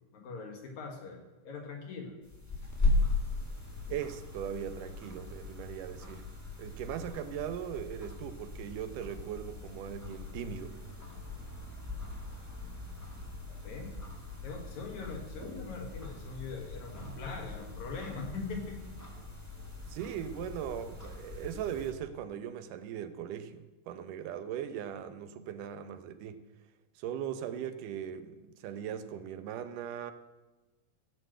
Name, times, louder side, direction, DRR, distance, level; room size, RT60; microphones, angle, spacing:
voice 1, 0.1-2.2 13.6-14.0 14.4-19.0, left 4 dB, 70° left, 3 dB, 2.7 m, -42 dB
sound 1, 2.2-21.9, left 2 dB, 5° left, 1.6 m, -38 dB
voice 2, 3.9-6.3 6.6-10.8 19.9-26.4 27.0-30.1, right 9 dB, 90° right, 10 dB, 2.4 m, -39 dB
15.0 x 6.6 x 7.7 m, 1.1 s
omnidirectional pair, 3.6 m